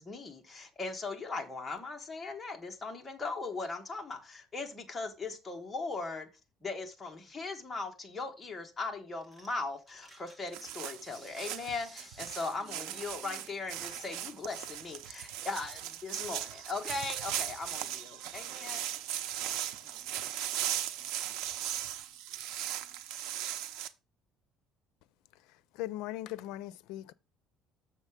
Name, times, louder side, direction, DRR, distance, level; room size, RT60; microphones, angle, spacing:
voice 1, 0.0-6.3 6.6-18.9, left 3 dB, 15° left, 1.4 m, -39 dB
sound 1, 9.2-18.5, right 1 dB, 10° right, 1.7 m, -59 dB
sound 2, 10.5-23.9, right 12 dB, 90° right, 0.7 m, -38 dB
voice 2, 12.4-13.5 19.8-21.3, right 3 dB, 30° right, 2.1 m, -60 dB
voice 3, 25.7-27.1, left 15 dB, 85° left, 0.5 m, -39 dB
6.9 x 6.4 x 4.9 m
cardioid pair, 155°, 0 cm